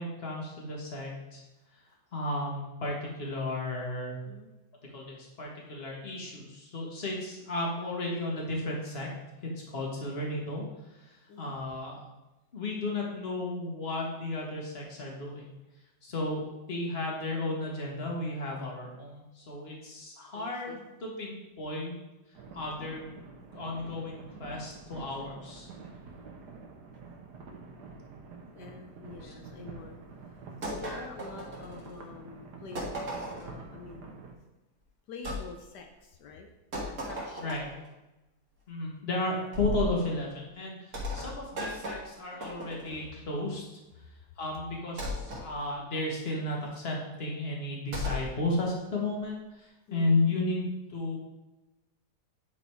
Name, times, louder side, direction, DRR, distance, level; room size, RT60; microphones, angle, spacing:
voice 1, 0.0-1.4 2.1-4.2 4.9-9.1 9.4-10.7 11.0-12.0 12.5-15.5 16.0-22.0 22.5-23.0 23.5-25.7 29.2-29.3 37.4-37.7 38.7-43.6 44.4-51.2, left 2 dB, 40° left, -1 dB, 1.8 m, -34 dB
voice 2, 20.3-20.9 24.5-24.7 25.1-25.2 28.5-30.0 30.2-30.3 30.6-34.1 35.1-36.5 36.8-37.5 49.9-50.4, left 4 dB, 80° left, 3 dB, 1.4 m, -46 dB
sound 1, 22.3-34.3, right 4 dB, 80° right, 1.6 m, -47 dB
sound 2, 30.6-32.0 32.8-33.6 35.2-35.4 36.7-37.8 39.5-40.0 40.9-43.0 45.0-45.5 47.9-48.3, equal, 55° right, 2.2 m, -36 dB
9.8 x 4.1 x 4.5 m, 1.0 s
omnidirectional pair, 1.8 m